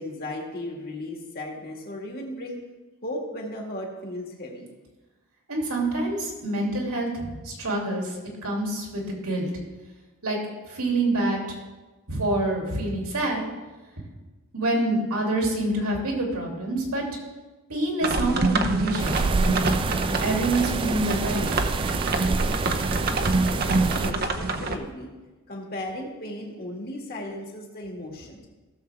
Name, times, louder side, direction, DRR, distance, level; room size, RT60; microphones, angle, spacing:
voice 1, 0.0-2.6 3.0-4.7 23.5-25.1 25.5-28.5, left 1 dB, 45° left, -1 dB, 2.2 m, -36 dB
voice 2, 5.5-9.5 10.2-10.4 10.7-11.4 12.1-13.4 14.5-17.0 17.7-19.7 20.0-21.5, right 2 dB, 85° right, -1 dB, 2.9 m, -26 dB
sound 1, 18.0-24.8, right 3 dB, 45° right, 0.8 m, -26 dB
sound 2, 19.0-24.1, right 4 dB, 25° right, 0.3 m, -27 dB
17.0 x 7.1 x 3.5 m, 1.2 s
head